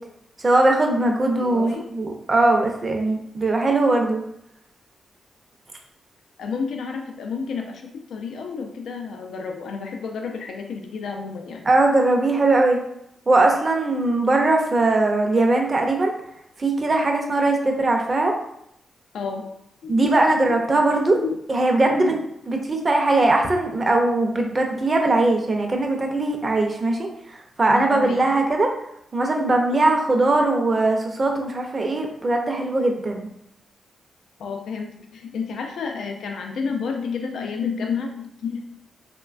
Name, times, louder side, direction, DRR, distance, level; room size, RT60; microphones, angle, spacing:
voice 1, 0.4-4.2 11.7-12.8 13.3-16.1 16.6-18.3 19.9-21.2 21.5-22.1 22.5-28.7 29.1-33.3, right 2 dB, 35° right, 2 dB, 0.5 m, -20 dB
voice 2, 1.4-1.9 6.4-11.7 19.1-19.5 19.8-20.6 21.2-21.4 22.0-22.2 27.7-28.2 34.4-38.6, left 5 dB, 80° left, 3 dB, 0.3 m, -31 dB
3.0 x 2.1 x 2.4 m, 0.76 s
cardioid pair, 95°, 0 cm